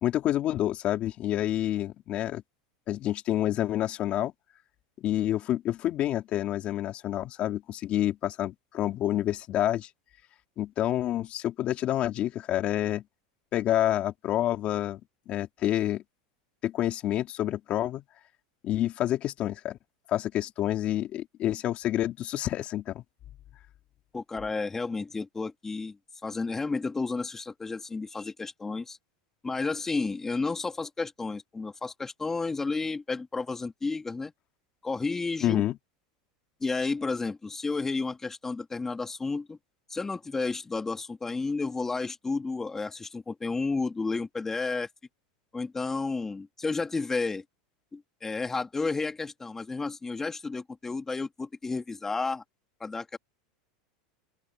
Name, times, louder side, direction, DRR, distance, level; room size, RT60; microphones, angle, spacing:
voice 1, 0.0-2.4 2.9-4.3 5.0-9.9 10.6-13.0 13.5-15.0 15.3-16.0 16.6-18.0 18.6-19.8 20.1-23.0 35.4-35.7, left 13 dB, 35° left, 3.1 m, -28 dB
voice 2, 24.1-29.0 29.4-34.3 34.8-35.6 36.6-39.6 39.9-44.9 45.5-47.4 47.9-52.4 52.8-53.2, left 3 dB, 10° left, 1.8 m, -32 dB
open air
supercardioid pair, 140°, 3 cm